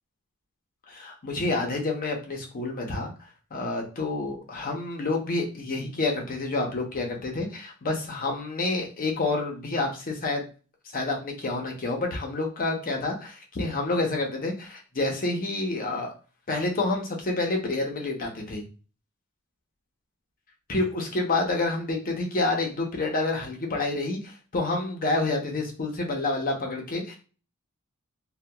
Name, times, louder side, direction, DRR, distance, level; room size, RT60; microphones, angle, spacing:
voice 1, 0.9-3.1 3.5-10.5 10.9-16.1 16.5-18.6 20.7-27.2, left 2 dB, 40° left, 1 dB, 0.7 m, -28 dB
2.8 x 2.2 x 2.2 m, 0.36 s
head